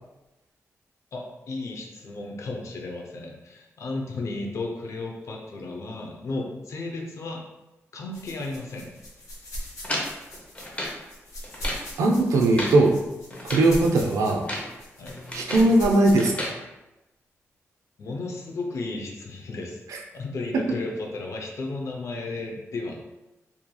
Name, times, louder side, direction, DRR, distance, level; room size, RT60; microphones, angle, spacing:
voice 1, 1.1-7.4 7.9-8.9 15.0-15.3 18.0-19.8 20.1-23.0, left 2 dB, 65° left, 1 dB, 0.6 m, -34 dB
sound 1, 8.1-16.2, equal, 90° left, 1.1 m, -40 dB
sound 2, 9.8-11.0 11.4-11.9 12.3-12.8 13.3-13.7 14.3-14.7 15.1-15.7 16.2-16.6, left 1 dB, 25° left, 0.7 m, -33 dB
voice 2, 12.0-13.0 13.4-14.4 15.3-16.5, right 2 dB, 85° right, 1 dB, 0.4 m, -19 dB
2.7 x 2.7 x 2.2 m, 0.99 s
cardioid pair, 60°, 5 cm